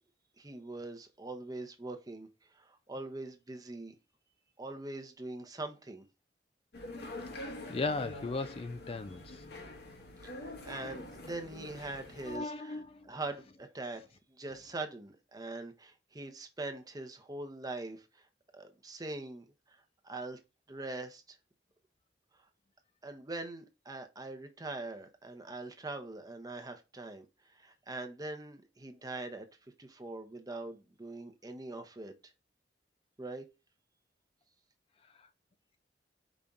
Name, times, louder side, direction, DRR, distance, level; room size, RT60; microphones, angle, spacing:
voice 1, 0.4-2.3 2.6-3.9 4.6-6.0 10.4-12.8 13.0-14.0 14.3-18.0 18.5-19.5 20.0-20.4 20.7-21.2 23.0-27.3 27.6-29.5 29.8-32.1 33.2-33.4, right 2 dB, 20° right, 0.8 m, -42 dB
sound 1, 6.7-12.4, left 2 dB, 65° left, 1.1 m, -45 dB
voice 2, 7.4-9.4 12.2-13.1, left 3 dB, 35° left, 0.4 m, -37 dB
5.1 x 2.8 x 3.5 m
head